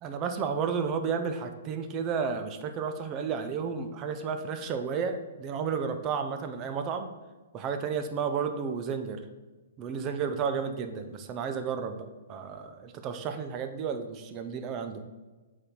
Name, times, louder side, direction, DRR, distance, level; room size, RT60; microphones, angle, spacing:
voice 1, 0.0-7.1 7.5-9.2 9.8-15.0, right 6 dB, 30° right, 8 dB, 0.7 m, -32 dB
7.6 x 4.2 x 4.7 m, 1.2 s
hypercardioid pair, 125°, 0 cm